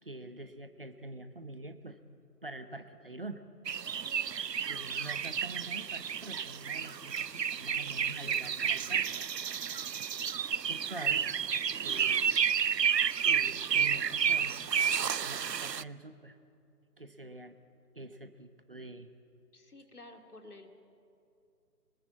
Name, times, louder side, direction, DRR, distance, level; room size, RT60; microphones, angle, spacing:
voice 1, 0.0-2.0 2.4-3.4 3.8-4.1 4.7-9.1 9.5-10.0 10.7-11.3 11.8-12.3 13.2-14.6 15.0-16.4 17.0-17.6 17.9-19.1, right 2 dB, 35° right, 10 dB, 0.9 m, -46 dB
sound 1, 3.7-15.8, right 7 dB, 80° right, 0.6 m, -31 dB
Crumpling crinkling, 6.8-12.3, left 3 dB, 15° left, 1.7 m, -60 dB
voice 2, 19.5-20.7, left 2 dB, 65° left, 5 dB, 2.7 m, -51 dB
24.0 x 20.0 x 8.5 m, 2.6 s
figure-of-eight pair, 160°, 49 cm